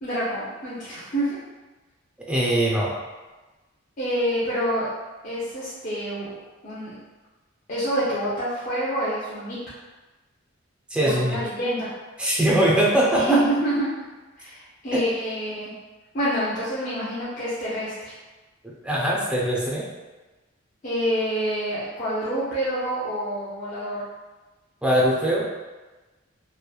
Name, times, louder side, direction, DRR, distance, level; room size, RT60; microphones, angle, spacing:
voice 1, 0.0-1.4 4.0-4.9 5.2-6.3 6.6-7.0 7.7-9.6 11.0-11.9 13.0-13.9 14.4-15.7 16.1-18.1 20.8-24.0, right 1 dB, 40° left, -11 dB, 0.6 m, -27 dB
voice 2, 2.3-2.9 10.9-11.4 12.2-13.4 14.9-15.0 18.6-19.9 24.8-25.4, right 1 dB, 5° right, -5 dB, 0.5 m, -21 dB
2.9 x 2.1 x 2.3 m, 1.2 s
head